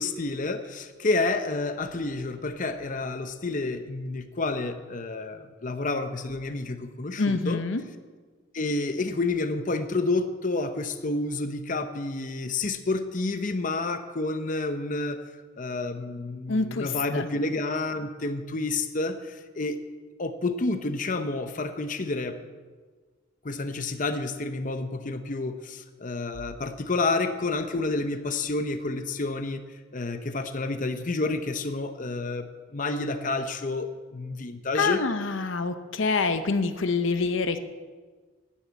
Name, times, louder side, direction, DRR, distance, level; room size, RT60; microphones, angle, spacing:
voice 1, 0.0-7.6 8.5-15.2 15.6-19.8 20.2-22.4 23.4-29.6 29.9-35.0, left 3 dB, 40° left, 8 dB, 0.8 m, -29 dB
voice 2, 7.2-7.8 16.5-17.3 34.7-37.6, left 4 dB, 70° left, 10 dB, 0.8 m, -26 dB
10.5 x 10.0 x 8.7 m, 1.4 s
head